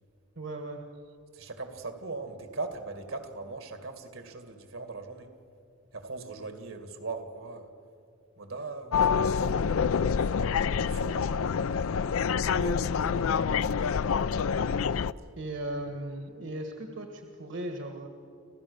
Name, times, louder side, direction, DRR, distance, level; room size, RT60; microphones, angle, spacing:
voice 1, 0.4-0.8 12.5-13.2 15.4-18.1, right 1 dB, 60° right, 4 dB, 1.5 m, -37 dB
voice 2, 1.3-5.3 5.9-7.7 8.4-10.4 10.8-11.2, right 3 dB, 75° right, 7 dB, 2.2 m, -40 dB
sound 1, 8.9-15.1, left 6 dB, 85° left, 0.4 m, -27 dB
27.5 x 16.0 x 7.0 m, 2.4 s
head